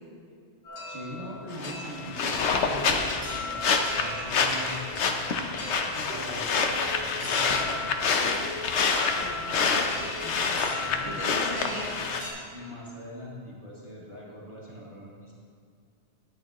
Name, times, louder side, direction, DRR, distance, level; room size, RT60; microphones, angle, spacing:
sound 1, 0.6-12.3, left 2 dB, 45° left, 3.4 m, -39 dB
voice 1, 0.9-4.9 5.7-6.5 7.2-7.9 10.7-11.8 12.5-15.3, equal, 25° right, -6 dB, 1.9 m, -42 dB
sound 2, 1.5-12.2, left 5 dB, 75° left, 1.1 m, -27 dB
sound 3, 4.9-7.2, right 2 dB, 55° right, 2.4 m, -47 dB
voice 2, 9.1-9.7 10.2-10.6 11.1-11.9, equal, 20° left, -6 dB, 1.9 m, -39 dB
12.5 x 10.5 x 3.0 m, 2.3 s
omnidirectional pair, 1.2 m